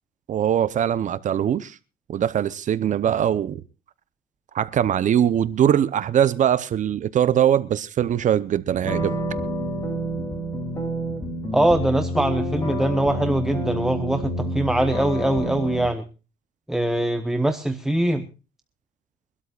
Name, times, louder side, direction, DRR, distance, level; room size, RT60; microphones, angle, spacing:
voice 1, 0.3-1.8 2.1-3.6 4.5-9.2, right 10 dB, 45° right, 0.7 m, -21 dB
sound 1, 8.8-15.9, equal, 20° left, 2.7 m, -28 dB
voice 2, 11.5-16.0 16.7-18.3, right 1 dB, 5° right, 0.9 m, -22 dB
24.0 x 12.5 x 2.4 m
cardioid pair, 110°, 17 cm